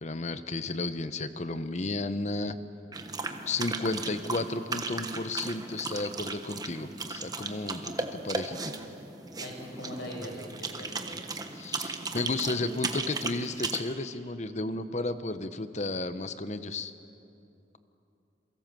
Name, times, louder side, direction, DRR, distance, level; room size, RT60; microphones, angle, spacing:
voice 1, 0.0-2.6 3.5-8.6 11.5-16.9, left 2 dB, 40° left, 11 dB, 1.0 m, -33 dB
sound 1, 2.9-13.8, right 3 dB, 20° right, 1.3 m, -36 dB
voice 2, 9.4-11.2, equal, 70° left, 1 dB, 6.3 m, -41 dB
28.0 x 23.5 x 7.7 m, 2.7 s
head